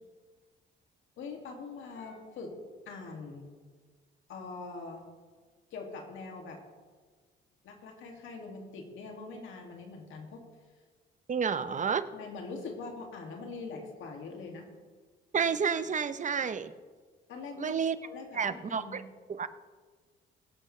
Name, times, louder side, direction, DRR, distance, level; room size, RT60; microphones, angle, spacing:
voice 1, 1.2-2.6 2.9-3.5 4.3-5.0 5.7-6.6 7.6-10.4 12.1-14.7 17.3-17.8 18.0-19.0, left 4 dB, 80° left, 1 dB, 2.4 m, -43 dB
voice 2, 11.3-12.0 15.3-16.7 17.6-18.0 18.3-19.0 19.3-19.5, right 6 dB, 40° right, 12 dB, 0.8 m, -30 dB
22.5 x 8.1 x 3.3 m, 1.5 s
cardioid pair, 90°, 20 cm